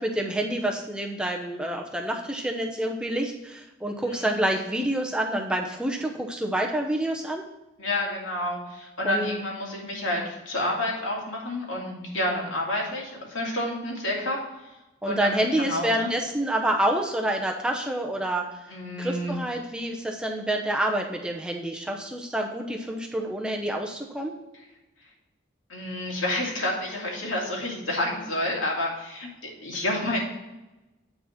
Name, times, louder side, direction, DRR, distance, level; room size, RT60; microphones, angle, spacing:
voice 1, 0.0-7.5 9.0-9.4 15.0-18.4 19.0-24.3, right 1 dB, 5° right, 1 dB, 0.7 m, -28 dB
voice 2, 7.8-14.7 15.0-16.1 18.7-19.4 25.7-29.3 29.6-30.2, left 1 dB, 85° left, -2 dB, 2.6 m, -29 dB
9.0 x 4.2 x 5.8 m, 1.0 s
head